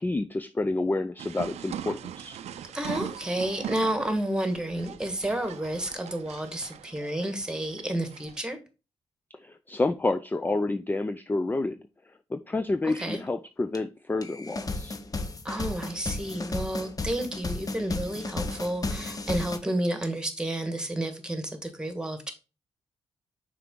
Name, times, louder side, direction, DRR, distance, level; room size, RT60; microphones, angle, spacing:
voice 1, 0.0-2.4 9.4-11.8 12.3-14.9, left 2 dB, 15° left, 0.4 m, -29 dB
sound 1, 1.2-8.4, right 10 dB, 85° right, 0.5 m, -41 dB
voice 2, 2.7-8.6 12.8-13.2 15.4-22.3, right 1 dB, 5° right, 1.6 m, -31 dB
sound 2, 13.7-13.8 14.2-19.6, left 3 dB, 35° left, 0.8 m, -34 dB
5.8 x 4.6 x 3.8 m
cardioid pair, 70°, 11 cm